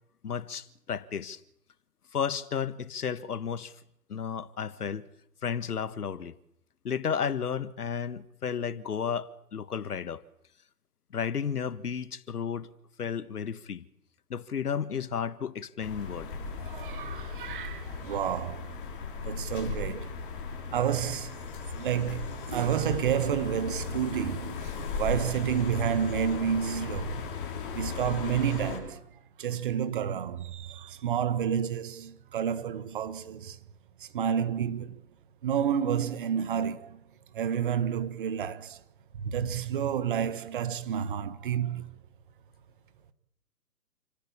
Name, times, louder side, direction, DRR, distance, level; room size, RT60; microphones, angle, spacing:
voice 1, 0.2-1.4 2.1-3.7 4.1-5.0 5.4-6.3 6.8-10.2 11.1-12.7 13.0-13.8 14.3-16.3, left 7 dB, 65° left, 1.5 m, -33 dB
sound 1, 15.8-28.8, left 5 dB, 30° left, 6.3 m, -36 dB
voice 2, 16.6-18.7 19.2-20.1 20.7-27.3 27.7-29.0 29.4-33.6 34.0-35.0 35.4-37.0 37.3-38.8 39.1-41.9, right 8 dB, 30° right, 1.4 m, -30 dB
29.5 x 13.0 x 8.6 m
hypercardioid pair, 150°, 49 cm